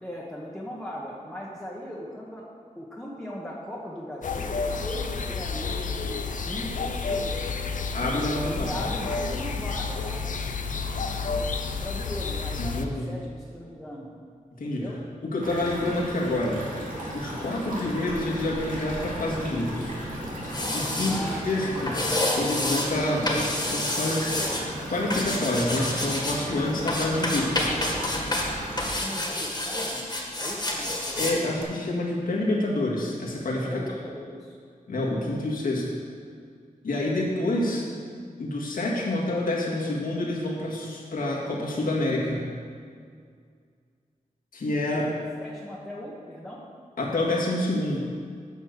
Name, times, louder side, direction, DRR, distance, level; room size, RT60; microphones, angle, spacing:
voice 1, 0.0-2.5 2.7-7.5 8.4-10.4 10.7-11.5 11.8-14.1 14.6-15.0 20.9-21.8 28.9-30.1 30.4-30.9 33.6-34.6 35.1-35.6 44.9-46.6, equal, 5° left, -5 dB, 1.2 m, -39 dB
sound 1, 4.2-12.8, left 4 dB, 65° left, 0.6 m, -30 dB
voice 2, 7.9-8.7 12.6-13.1 14.6-14.9 15.2-16.6 17.1-20.0 20.7-22.0 22.3-24.3 24.9-27.7 31.2-33.8 34.9-35.9 36.8-37.9 38.4-42.5 44.5-45.1 47.0-48.0, left 1 dB, 90° left, -4 dB, 1.8 m, -27 dB
sound 2, 15.4-28.9, equal, 75° right, 2.3 m, -35 dB
sound 3, 20.4-21.2 21.9-22.9 23.3-24.6 25.1-26.4 26.9-28.5 28.8-31.3 31.6-31.7, left 1 dB, 30° left, 1.7 m, -28 dB
8.9 x 5.5 x 6.6 m, 2.1 s
wide cardioid pair, 90°, 14 cm